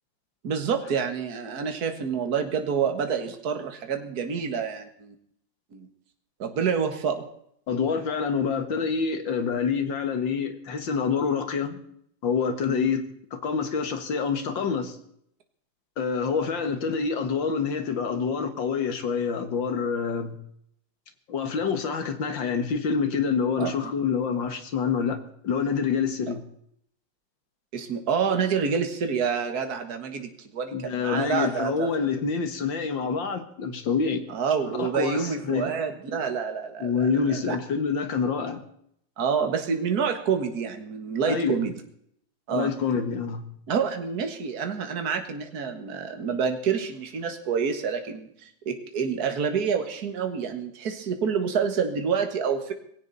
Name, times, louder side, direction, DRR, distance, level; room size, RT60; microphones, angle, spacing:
voice 1, 0.4-5.2 5.7-5.9 6.4-7.3 12.7-12.9 23.6-23.7 27.7-31.9 34.3-37.6 39.2-41.7 42.5-42.7 43.7-52.7, right 6 dB, 55° right, 6 dB, 2.1 m, -28 dB
voice 2, 7.7-11.8 12.2-13.0 13.3-15.0 16.0-20.4 21.3-25.2 25.4-26.4 30.7-34.3 34.8-35.7 36.8-38.6 41.3-41.6 42.5-43.5, left 6 dB, 80° left, 8 dB, 2.5 m, -27 dB
19.0 x 16.5 x 4.1 m, 0.69 s
omnidirectional pair, 2.0 m